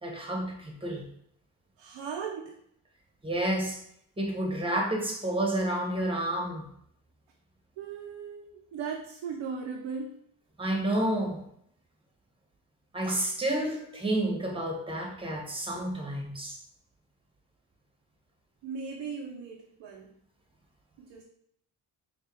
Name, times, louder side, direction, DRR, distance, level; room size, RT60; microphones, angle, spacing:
voice 1, 0.0-1.1 3.2-3.8 4.2-6.7 10.6-11.5 12.9-16.6, right 1 dB, 10° right, 1 dB, 1.2 m, -30 dB
voice 2, 1.8-2.6 7.8-10.2 18.6-20.1 21.0-21.2, right 6 dB, 85° right, 0 dB, 0.7 m, -38 dB
4.6 x 2.4 x 3.4 m, 0.70 s
cardioid pair, 65°, 44 cm